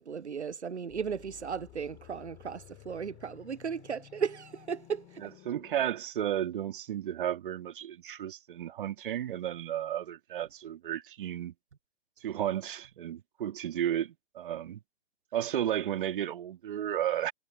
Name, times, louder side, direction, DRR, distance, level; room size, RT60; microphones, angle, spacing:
voice 1, 0.0-5.3, right 6 dB, 90° right, 0.5 m, -36 dB
sound 1, 0.9-5.9, left 23 dB, 30° left, 4.1 m, -54 dB
voice 2, 5.2-11.5 12.2-14.8 15.3-17.3, right 11 dB, 50° right, 2.6 m, -33 dB
figure-of-eight pair, 115°, 33 cm